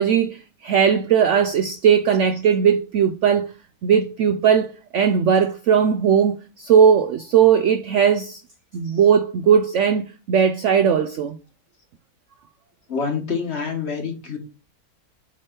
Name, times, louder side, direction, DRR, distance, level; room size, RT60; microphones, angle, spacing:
voice 1, 0.0-3.5 3.8-8.4 8.7-11.4, right 7 dB, 70° right, 0.7 m, -18 dB
voice 2, 12.9-14.4, left 5 dB, 45° left, 1.4 m, -27 dB
7.7 x 3.3 x 4.3 m
omnidirectional pair, 1.8 m